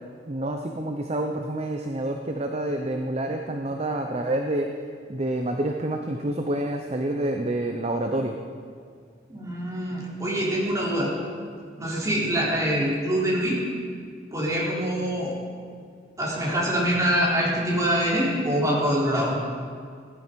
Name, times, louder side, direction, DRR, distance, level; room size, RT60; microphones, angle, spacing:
voice 1, 0.3-4.7 5.1-8.3, right 1 dB, 35° right, 4 dB, 0.7 m, -28 dB
voice 2, 9.3-11.1 11.8-13.6 14.3-15.3 16.2-19.3, equal, 20° right, -6 dB, 3.9 m, -24 dB
17.5 x 11.5 x 5.3 m, 2.1 s
head